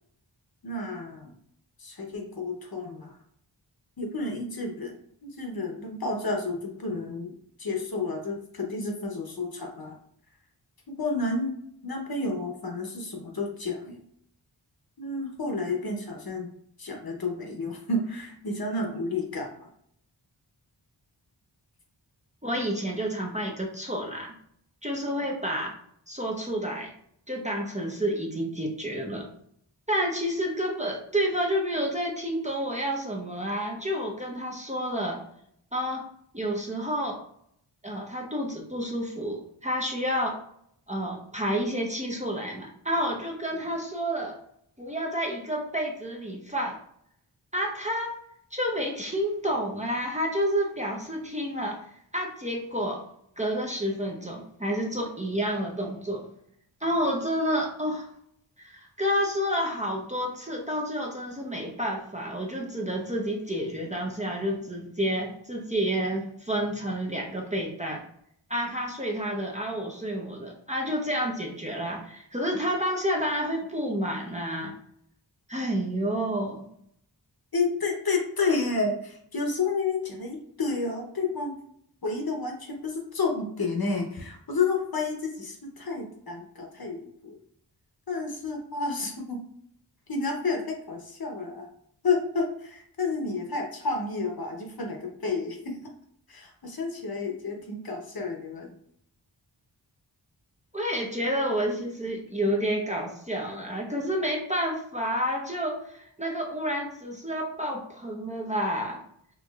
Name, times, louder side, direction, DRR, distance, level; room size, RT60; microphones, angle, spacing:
voice 1, 0.6-1.3 1.8-3.1 4.0-4.9 5.2-7.3 7.6-10.0 11.0-11.5 11.8-14.0 15.0-16.5 16.8-19.5 77.5-81.5 82.0-87.4 88.1-89.4 90.1-91.7 92.0-95.7 96.3-98.7, left 3 dB, 55° left, 1 dB, 0.8 m, -30 dB
voice 2, 22.4-24.3 24.8-25.7 26.1-26.9 27.3-29.3 29.9-35.2 35.7-36.1 36.3-37.2 37.8-40.4 40.9-44.4 44.8-46.8 47.5-48.1 48.5-51.8 52.1-53.0 53.4-56.3 56.8-58.1 58.6-68.0 68.5-74.7 75.5-76.7 100.7-109.0, equal, 15° right, -1 dB, 0.6 m, -29 dB
4.5 x 2.6 x 2.3 m, 0.68 s
wide cardioid pair, 65°, 44 cm